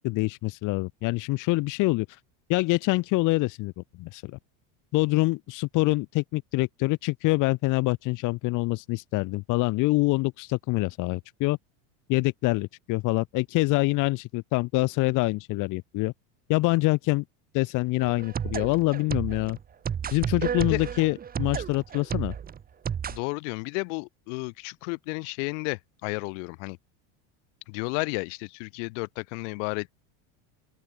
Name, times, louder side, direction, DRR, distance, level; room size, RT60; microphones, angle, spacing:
voice 1, 0.0-2.2 2.5-4.4 4.9-11.6 12.1-16.1 16.5-17.2 17.5-19.6 20.1-22.3, left 22 dB, 50° left, 2.7 m, -25 dB
sound 1, 18.0-23.2, right 8 dB, 20° right, 2.6 m, -32 dB
voice 2, 23.1-26.8 27.7-29.9, left 34 dB, 65° left, 4.1 m, -32 dB
open air
supercardioid pair, 150°, 39 cm